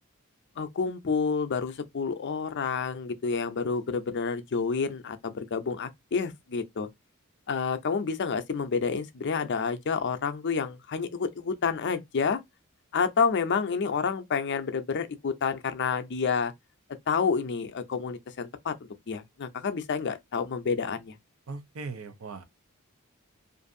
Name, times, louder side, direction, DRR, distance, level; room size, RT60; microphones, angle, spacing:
voice 1, 0.6-6.9 7.5-12.4 12.9-16.5 17.1-18.7 19.1-21.2, left 5 dB, 55° left, 0.5 m, -29 dB
voice 2, 21.5-22.4, right 4 dB, 90° right, 0.6 m, -39 dB
2.6 x 2.5 x 2.5 m
head